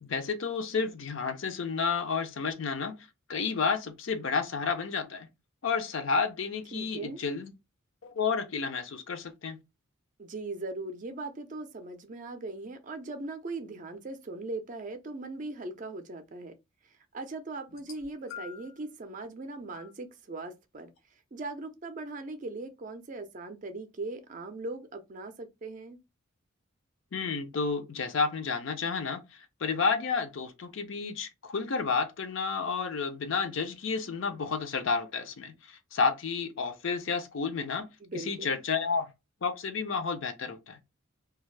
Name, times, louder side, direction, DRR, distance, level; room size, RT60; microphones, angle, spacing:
voice 1, 0.0-3.0 3.3-5.3 5.6-7.5 8.0-9.6 27.1-37.9 38.1-39.1 39.4-40.8, left 5 dB, 65° left, 0.5 m, -31 dB
voice 2, 6.7-7.2 10.2-16.5 17.1-20.9 21.3-26.0 38.0-38.6, right 2 dB, 40° right, 0.4 m, -39 dB
sound 1, 17.7-18.8 19.7-19.9 21.0-21.1, left 8 dB, 85° left, 0.9 m, -46 dB
2.5 x 2.3 x 3.2 m
head